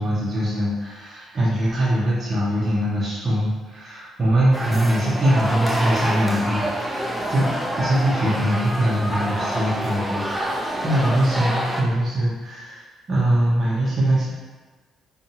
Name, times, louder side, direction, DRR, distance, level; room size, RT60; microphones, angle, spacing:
voice 1, 0.0-7.5 7.8-12.8 13.1-14.3, right 1 dB, 45° right, -8 dB, 0.9 m, -22 dB
sound 1, 4.5-11.8, equal, 5° right, 0.5 m, -27 dB
2.6 x 2.4 x 2.8 m, 1.4 s
supercardioid pair, 60°, 0 cm